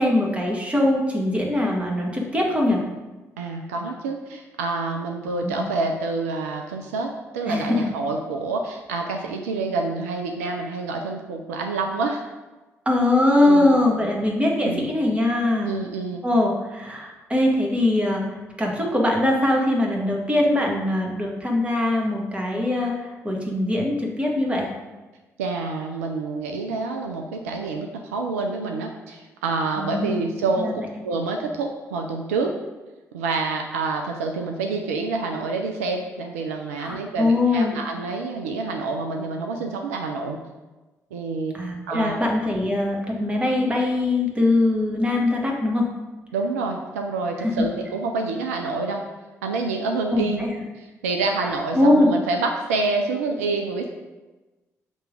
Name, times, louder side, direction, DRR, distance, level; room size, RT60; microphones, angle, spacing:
voice 1, 0.0-2.8 5.3-5.6 7.5-7.9 12.8-15.8 16.2-24.7 29.8-30.3 30.6-30.7 36.8-37.8 41.5-45.9 47.4-47.7 50.1-50.5 51.7-52.1, left 1 dB, 15° right, -1 dB, 1.5 m, -22 dB
voice 2, 3.4-12.3 13.4-13.7 14.6-14.8 15.6-16.2 25.4-30.7 31.0-32.5 33.1-40.4 41.1-41.5 41.9-42.2 46.3-49.0 49.4-50.5 50.8-53.9, right 3 dB, 75° right, 3 dB, 0.4 m, -27 dB
6.6 x 3.0 x 5.1 m, 1.2 s
figure-of-eight pair, 40°, 8 cm